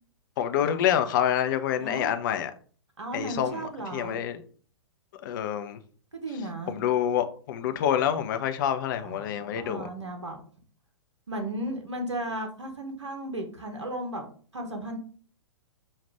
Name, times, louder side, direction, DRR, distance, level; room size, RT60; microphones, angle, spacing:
voice 1, 0.4-2.5 3.1-4.4 5.2-5.8 6.7-9.9, left 10 dB, 45° left, 0.5 m, -27 dB
voice 2, 1.8-2.1 3.0-4.2 6.1-6.8 9.0-10.4 11.3-14.3 14.5-15.0, right 1 dB, 75° right, 1.0 m, -35 dB
5.3 x 2.4 x 3.3 m
figure-of-eight pair, 110°, 15 cm